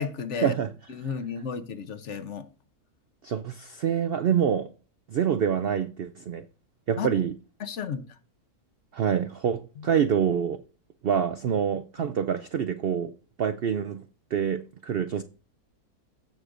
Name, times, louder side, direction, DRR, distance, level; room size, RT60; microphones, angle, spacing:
voice 1, 0.0-0.5 0.9-2.5 7.0-7.1 7.6-8.0 9.8-9.9 12.0-12.1, left 6 dB, 55° left, 1.0 m, -33 dB
voice 2, 3.2-4.7 5.1-6.4 6.9-7.3 8.9-10.6 11.0-13.1 13.4-14.0 14.3-15.2, right 8 dB, 80° right, 0.5 m, -26 dB
15.5 x 6.5 x 2.5 m
omnidirectional pair, 1.6 m